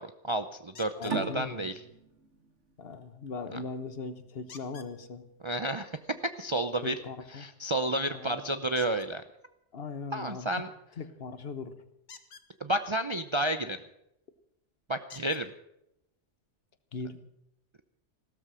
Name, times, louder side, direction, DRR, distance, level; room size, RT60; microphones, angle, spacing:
voice 1, 0.0-1.7 3.5-3.6 5.4-5.9 6.4-6.9 7.3-9.2 10.1-10.7 12.6-13.8 14.9-15.5, right 1 dB, 30° right, 9 dB, 0.6 m, -31 dB
sound 1, 0.7-1.2 4.5-4.9 8.7-9.1 12.0-12.5 14.1-14.2 15.1-15.4 16.4-16.5 17.0-17.1, left 5 dB, 90° left, 1.6 m, -50 dB
voice 2, 1.0-1.7 2.8-5.2 6.8-7.5 8.1-8.4 9.7-10.5 11.0-11.7 16.9-17.2, left 4 dB, 55° left, 11 dB, 1.4 m, -39 dB
sound 2, 1.1-4.3, right 4 dB, 80° right, 2.1 m, -39 dB
16.0 x 13.5 x 6.3 m, 0.83 s
omnidirectional pair, 1.2 m